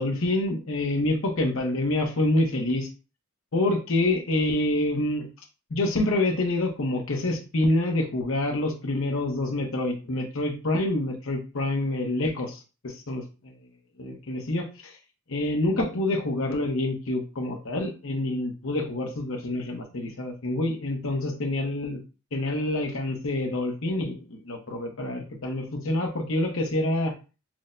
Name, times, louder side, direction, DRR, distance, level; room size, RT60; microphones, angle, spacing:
voice 1, 0.0-2.9 3.5-5.3 5.7-13.2 14.0-14.9 15.3-22.0 22.3-27.1, left 1 dB, 65° left, 3 dB, 0.8 m, -27 dB
6.1 x 2.1 x 2.6 m, 0.32 s
head